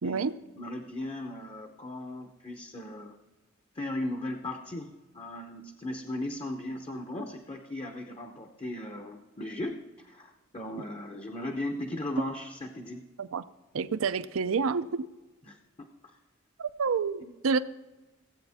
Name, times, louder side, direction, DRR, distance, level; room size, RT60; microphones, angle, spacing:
voice 1, 0.0-0.3 13.2-13.4 13.7-15.1 16.6-17.6, right 5 dB, 75° right, 14 dB, 0.5 m, -28 dB
voice 2, 0.6-3.2 3.7-13.0 15.5-15.6 17.2-17.3, left 1 dB, 30° left, 5 dB, 0.7 m, -37 dB
16.5 x 8.1 x 3.5 m, 1.2 s
head